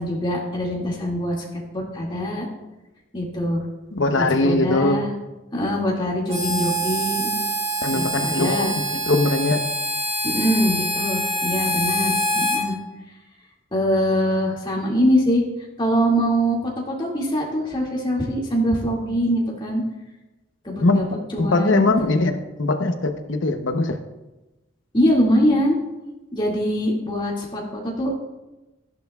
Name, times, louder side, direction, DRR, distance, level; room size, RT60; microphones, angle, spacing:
voice 1, 0.0-1.4 1.7-2.5 3.1-3.7 4.2-5.1 5.5-7.3 7.9-8.7 10.2-12.8 13.7-15.4 15.8-16.6 17.0-19.8 20.6-21.1 21.3-22.1 24.9-25.8 26.3-28.2, equal, 25° left, -3 dB, 2.2 m, -23 dB
voice 2, 3.9-5.0 7.8-9.6 20.8-21.0 21.4-24.0, left 2 dB, 65° left, 7 dB, 0.9 m, -21 dB
Harmonica, 6.3-12.6, equal, 35° right, 2.6 m, -25 dB
13.5 x 11.0 x 2.3 m, 1.1 s
head